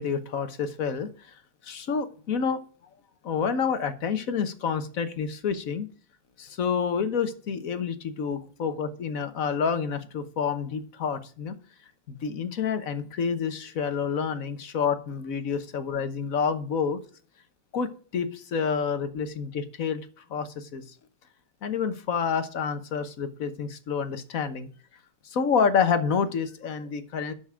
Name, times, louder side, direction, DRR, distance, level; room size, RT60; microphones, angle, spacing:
voice 1, 0.0-2.6 3.2-5.9 6.4-11.5 12.1-17.0 17.7-20.8 21.6-24.7 25.2-27.3, left 6 dB, 55° left, 10 dB, 1.4 m, -28 dB
12.0 x 5.9 x 5.0 m, 0.42 s
omnidirectional pair, 1.9 m